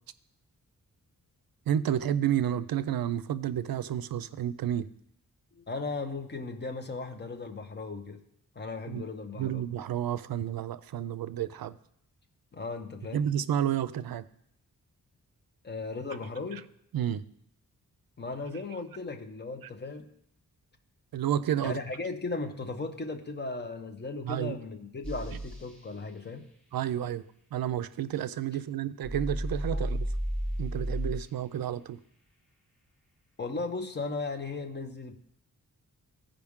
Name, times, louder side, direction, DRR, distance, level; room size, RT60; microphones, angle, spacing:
voice 1, 1.7-4.9 8.9-9.0 9.4-11.8 13.1-14.3 16.9-17.2 21.1-21.8 24.2-24.6 26.7-27.2 27.5-30.1 30.6-32.0, right 10 dB, 80° right, 16 dB, 0.5 m, -30 dB
voice 2, 5.5-8.2 8.5-9.7 12.5-13.2 15.6-16.7 18.2-20.1 21.6-26.5 29.7-29.9 33.4-35.1, left 3 dB, 30° left, 5 dB, 0.8 m, -36 dB
sound 1, 25.0-25.6 29.0-31.2, equal, 5° left, 1.1 m, -32 dB
15.0 x 5.1 x 3.6 m, 0.72 s
wide cardioid pair, 165°, 35 cm